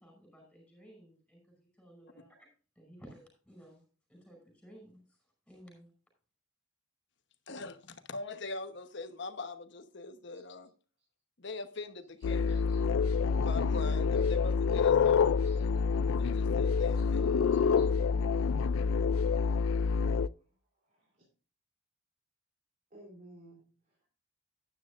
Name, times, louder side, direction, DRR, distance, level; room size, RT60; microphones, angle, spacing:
voice 1, 0.0-2.5 2.7-3.8 4.1-5.2 5.5-5.9, equal, 5° left, 5.2 m, -56 dB
voice 2, 7.5-10.7 11.4-12.6 13.2-15.3 16.1-17.5, left 3 dB, 55° left, 1.1 m, -42 dB
sound 1, 12.2-20.3, left 5 dB, 80° left, 0.4 m, -27 dB
voice 3, 20.8-21.2 22.9-24.1, right 1 dB, 40° right, 3.4 m, -57 dB
12.5 x 10.0 x 2.5 m
head